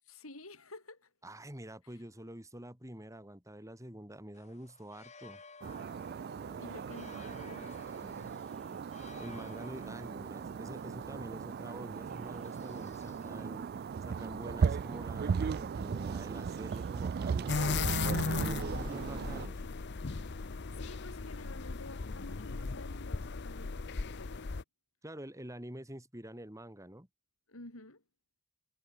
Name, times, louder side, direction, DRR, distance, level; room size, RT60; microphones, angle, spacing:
voice 1, 0.0-1.1 1.8-2.0 6.6-8.8 20.7-24.5 27.5-28.0, left 2 dB, 80° left, 5.2 m, -51 dB
voice 2, 1.2-5.4 6.5-6.7 9.2-13.7 14.0-19.6 25.0-27.1, right 1 dB, 15° right, 5.0 m, -47 dB
sound 1, 4.3-22.6, left 4 dB, 35° left, 5.8 m, -60 dB
sound 2, 5.6-19.5, right 6 dB, 50° right, 0.3 m, -37 dB
sound 3, 17.5-24.6, left 4 dB, 55° left, 0.7 m, -36 dB
head